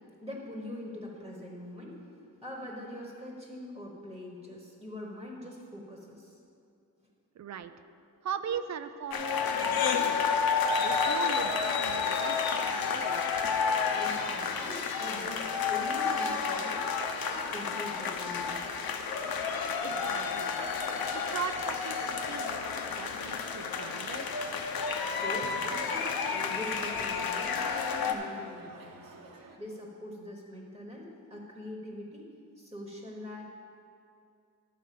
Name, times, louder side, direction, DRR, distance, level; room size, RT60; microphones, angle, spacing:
voice 1, 0.2-2.0 2.4-6.4 7.6-7.7 8.5-8.6 9.0-9.6 10.0-10.3 13.9-16.8 17.3-18.6 25.0-29.2 29.6-32.3 32.5-33.4, left 1 dB, 10° right, -2 dB, 1.2 m, -43 dB
voice 2, 7.4-7.7 8.2-10.2 10.8-13.2 19.8-20.5 21.1-22.6 22.9-24.3, right 8 dB, 50° right, 11 dB, 0.5 m, -39 dB
sound 1, 9.1-28.1, left 5 dB, 85° left, 0.8 m, -30 dB
sound 2, 24.4-29.6, right 3 dB, 70° right, 1.1 m, -51 dB
11.0 x 4.7 x 7.5 m, 2.5 s
wide cardioid pair, 165°, 35 cm